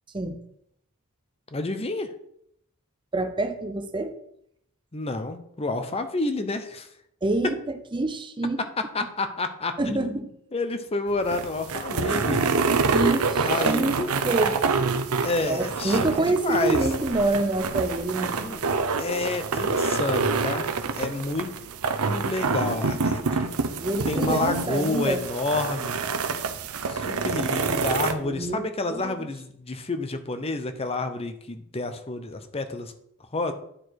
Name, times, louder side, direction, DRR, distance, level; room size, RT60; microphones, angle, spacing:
voice 1, 1.5-2.1 4.9-6.9 8.9-10.2 10.5-12.4 13.4-14.1 15.2-16.8 18.2-20.7 20.9-21.5 22.1-23.5 24.1-26.0 26.9-32.9 33.3-33.5, left 3 dB, 25° left, 8 dB, 0.7 m, -29 dB
voice 2, 3.1-4.1 7.2-8.6 9.8-10.3 12.9-14.6 15.4-18.5 23.8-25.2 28.2-29.3, right 2 dB, 20° right, 8 dB, 0.6 m, -27 dB
sound 1, 11.1-28.1, right 4 dB, 75° right, 0.7 m, -27 dB
10.0 x 4.6 x 4.6 m, 0.71 s
head